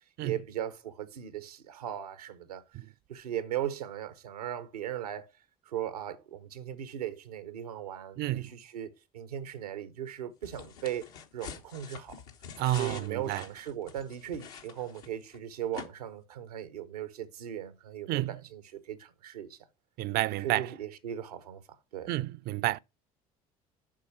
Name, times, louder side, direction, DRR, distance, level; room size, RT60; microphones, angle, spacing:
voice 1, 0.2-2.6 3.1-5.3 5.7-12.2 12.8-19.6 20.4-21.6 21.9-22.1, right 10 dB, 85° right, 0.9 m, -38 dB
voice 2, 8.2-8.5 12.6-13.4 18.1-18.4 20.0-20.7 22.1-22.8, right 16 dB, 55° right, 0.5 m, -30 dB
sound 1, 10.4-15.4 15.7-15.9, left 7 dB, 75° left, 1.3 m, -46 dB
7.5 x 4.7 x 6.0 m
hypercardioid pair, 60°, 19 cm